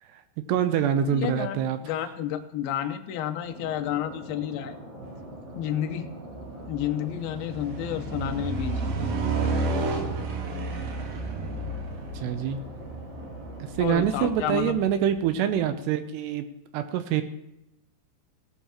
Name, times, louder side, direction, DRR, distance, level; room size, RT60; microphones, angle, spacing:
voice 1, 0.5-1.8 12.1-12.6 13.6-16.5 16.7-17.2, right 9 dB, 80° right, 9 dB, 2.6 m, -25 dB
voice 2, 1.1-4.8 5.6-6.1 6.7-9.1 13.8-14.8, left 11 dB, 80° left, 6 dB, 2.3 m, -31 dB
sound 1, 3.4-14.0, right 1 dB, 40° right, 4.2 m, -43 dB
sound 2, 5.0-5.2 5.7-15.6, right 3 dB, 60° right, 2.4 m, -32 dB
17.5 x 12.5 x 2.9 m, 0.87 s
omnidirectional pair, 5.2 m